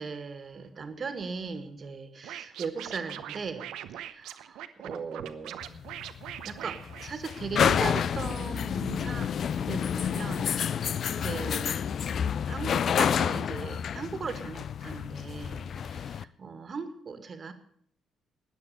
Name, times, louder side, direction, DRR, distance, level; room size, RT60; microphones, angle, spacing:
voice 1, 0.0-3.7 3.9-5.7 6.4-10.6 11.2-11.8 12.5-17.5, right 5 dB, 45° right, 10 dB, 1.9 m, -38 dB
Scratching (performance technique), 2.2-7.7, right 11 dB, 65° right, 0.8 m, -41 dB
sound 1, 5.6-16.2, left 8 dB, 55° left, 0.4 m, -29 dB
13.5 x 9.6 x 6.9 m, 0.65 s
figure-of-eight pair, 45°, 0 cm